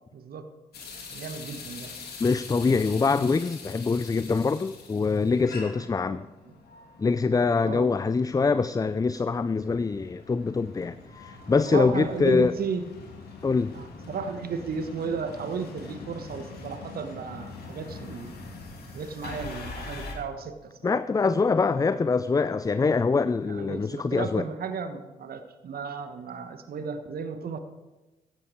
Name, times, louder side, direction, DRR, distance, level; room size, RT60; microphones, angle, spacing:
voice 1, 0.1-0.4 1.1-1.9 6.0-6.2 7.6-7.9 11.7-12.8 13.7-18.3 18.9-21.0 21.8-21.9 23.4-27.6, right 5 dB, 55° right, 8 dB, 1.3 m, -34 dB
sound 1, 0.7-20.2, left 3 dB, 60° left, 3.0 m, -43 dB
voice 2, 2.2-6.2 7.0-12.5 13.4-13.8 20.8-24.4, left 4 dB, 20° left, 14 dB, 0.5 m, -24 dB
16.0 x 10.5 x 4.6 m, 1.1 s
hypercardioid pair, 40°, 19 cm